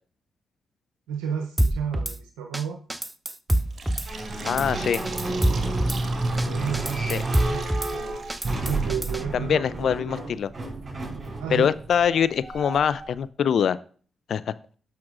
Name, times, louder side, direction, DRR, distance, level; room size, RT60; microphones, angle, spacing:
voice 1, 1.1-2.8 6.4-7.7 7.9-8.2 8.6-10.3 11.4-11.7, right 7 dB, 90° right, 3 dB, 0.6 m, -32 dB
Drum kit / Snare drum, 1.6-2.2 2.5-2.6 2.9-4.1 4.5-4.7 4.9-6.0 6.4-6.5 6.7-7.9 8.3-9.2, right 1 dB, 15° right, 0.6 m, -25 dB
Fill (with liquid), 3.5-9.2, right 4 dB, 55° right, 1.6 m, -41 dB
sound 1, 4.1-13.1, right 2 dB, 40° right, 4.8 m, -30 dB
voice 2, 4.4-5.0 7.1-7.2 9.3-10.5 11.5-13.8 14.3-14.4, left 8 dB, 70° left, 16 dB, 0.4 m, -23 dB
17.5 x 5.8 x 2.5 m, 0.43 s
hypercardioid pair, 45°, 0 cm